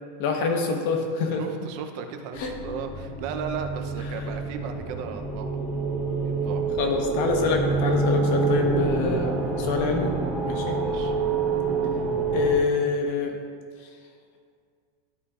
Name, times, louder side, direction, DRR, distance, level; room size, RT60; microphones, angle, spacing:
voice 1, 0.2-1.4 2.4-2.5 6.8-10.2 10.4-10.8 12.3-13.4, left 4 dB, 55° left, 3 dB, 1.1 m, -26 dB
voice 2, 1.4-5.6 6.2-6.6 10.8-11.1, right 6 dB, 45° right, 6 dB, 0.6 m, -36 dB
sound 1, 2.3-12.6, right 4 dB, 15° right, 1.2 m, -27 dB
11.5 x 5.0 x 2.5 m, 2.1 s
supercardioid pair, 160°, 0 cm